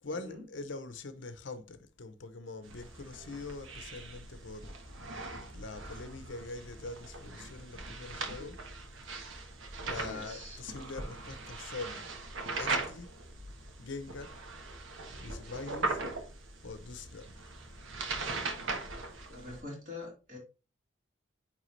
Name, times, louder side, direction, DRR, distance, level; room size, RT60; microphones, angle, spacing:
voice 1, 0.0-4.7 5.5-8.6 9.8-12.2 12.4-13.1 13.8-14.3 15.2-16.0 16.6-17.3 18.3-18.7 19.0-19.1, left 3 dB, 70° left, 0.8 m, -44 dB
sound 1, 2.6-19.6, right 3 dB, 85° right, 1.3 m, -40 dB
voice 2, 9.9-10.6 19.3-20.4, left 2 dB, 45° right, 3.5 m, -45 dB
9.2 x 3.5 x 3.2 m
head